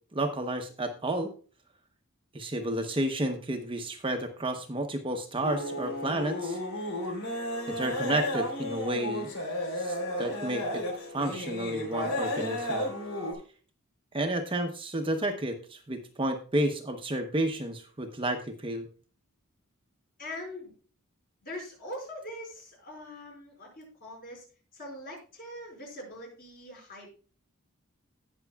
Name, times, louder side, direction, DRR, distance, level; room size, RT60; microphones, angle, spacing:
voice 1, 0.1-1.3 2.3-6.6 7.7-9.3 9.7-10.8 11.1-12.9 14.1-18.9, right 1 dB, 25° right, 4 dB, 0.9 m, -31 dB
sound 1, 5.4-13.3, left 1 dB, 80° left, 3.6 m, -33 dB
voice 2, 20.2-20.7 21.4-24.4 24.7-27.1, left 1 dB, 45° left, -1 dB, 5.3 m, -42 dB
18.0 x 6.1 x 2.3 m, 0.38 s
head